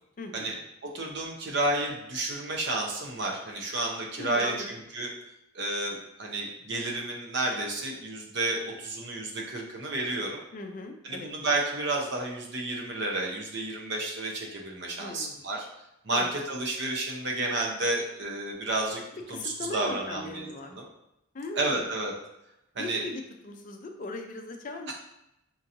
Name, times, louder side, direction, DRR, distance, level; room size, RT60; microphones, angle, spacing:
voice 1, 0.2-0.5 4.2-4.7 10.5-11.3 15.0-15.4 16.1-16.3 19.3-20.7 21.3-21.9 22.8-25.0, left 2 dB, 40° left, 4 dB, 0.4 m, -38 dB
voice 2, 0.8-5.1 5.5-10.4 11.0-15.7 16.0-19.0 19.3-20.8 21.5-22.1 22.7-23.0, right 2 dB, 60° right, 0 dB, 0.7 m, -31 dB
4.5 x 2.8 x 2.6 m, 0.85 s
head